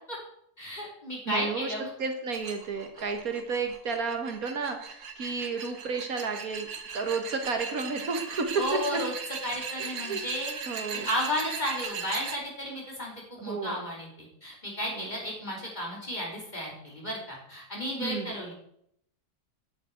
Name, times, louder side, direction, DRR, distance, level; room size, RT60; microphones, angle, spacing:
voice 1, 0.6-1.9 8.5-9.1 9.4-10.5 10.9-18.5, equal, 30° left, -2 dB, 4.5 m, -33 dB
voice 2, 1.3-1.7 2.0-6.7 6.9-8.6 8.9-9.0 9.8-10.2 10.7-11.1 13.4-13.8 14.9-15.1 18.0-18.3, right 4 dB, 65° right, 5 dB, 1.9 m, -32 dB
sound 1, 2.3-12.4, right 6 dB, 85° right, 1.9 m, -38 dB
10.5 x 6.7 x 9.2 m, 0.73 s
omnidirectional pair, 1.6 m